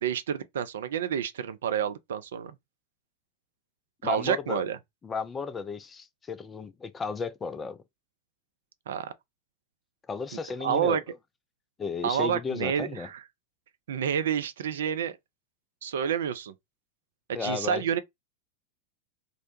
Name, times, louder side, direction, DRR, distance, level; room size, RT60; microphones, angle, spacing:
voice 1, 0.0-2.5 4.0-4.8 8.9-9.1 10.6-11.0 12.0-13.2 13.9-15.2 15.8-16.5 17.4-18.0, right 8 dB, 60° right, 0.3 m, -29 dB
voice 2, 4.0-4.6 5.0-7.8 10.1-11.0 11.8-13.1 17.3-17.8, left 5 dB, 15° left, 0.3 m, -34 dB
2.5 x 2.1 x 2.8 m
figure-of-eight pair, 90°, 0 cm